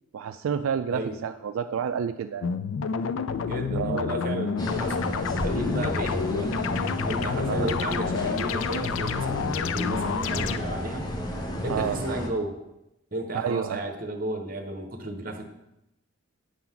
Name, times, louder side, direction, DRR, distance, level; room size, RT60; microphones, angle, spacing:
voice 1, 0.1-2.5 3.7-4.0 7.5-7.7 11.7-12.0 13.3-13.8, right 7 dB, 85° right, 8 dB, 0.3 m, -29 dB
sound 1, 2.4-10.6, left 6 dB, 75° left, 0.4 m, -29 dB
voice 2, 3.4-5.0 5.2-6.6 7.1-11.1 11.6-12.6 13.1-15.5, right 1 dB, 45° right, 4 dB, 0.9 m, -33 dB
sound 2, 4.6-12.3, equal, 20° left, 0.8 m, -32 dB
8.3 x 3.9 x 5.8 m, 0.89 s
head